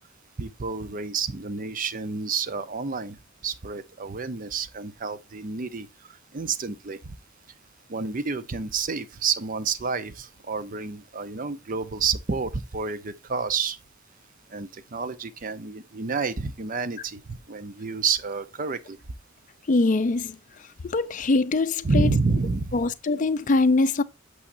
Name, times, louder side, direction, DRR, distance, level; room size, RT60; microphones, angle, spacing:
voice 1, 0.4-3.2 3.4-5.9 6.3-7.0 7.9-13.8 14.5-19.0 21.8-22.8, right 4 dB, 40° right, 0.6 m, -29 dB
voice 2, 19.7-20.4 20.9-22.1 22.7-24.0, left 3 dB, 40° left, 0.5 m, -22 dB
8.7 x 6.3 x 2.6 m
head